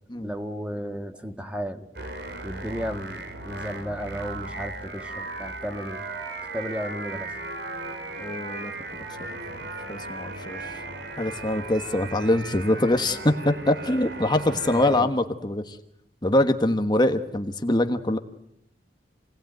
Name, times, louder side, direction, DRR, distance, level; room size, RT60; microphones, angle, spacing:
voice 1, 0.1-1.9 2.4-6.0 6.5-7.3 14.5-15.1, equal, 5° right, 7 dB, 1.8 m, -34 dB
sound 1, 1.9-15.0, right 2 dB, 70° right, 3.8 m, -36 dB
voice 2, 8.2-8.7 9.3-9.4 9.9-10.6 11.2-15.8 16.2-18.2, left 1 dB, 25° left, 7 dB, 1.3 m, -24 dB
29.0 x 19.5 x 9.3 m, 0.76 s
head